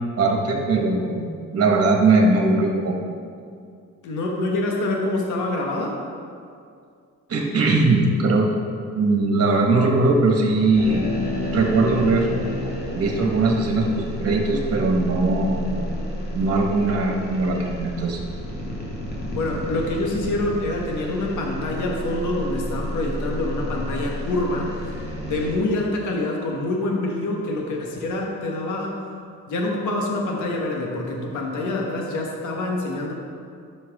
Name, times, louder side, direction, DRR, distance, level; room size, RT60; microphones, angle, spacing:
voice 1, 0.2-3.0 7.3-8.5 9.0-11.1 11.5-12.3 12.9-15.9 16.3-18.2, right 3 dB, 50° right, 0 dB, 1.7 m, -20 dB
voice 2, 4.0-6.0 19.3-24.7 25.2-29.0 29.5-33.1, left 2 dB, 75° left, 0 dB, 1.5 m, -26 dB
sound 1, 10.7-25.6, equal, 35° left, 2.2 m, -31 dB
11.0 x 6.2 x 3.7 m, 2.3 s
cardioid pair, 90°, 30 cm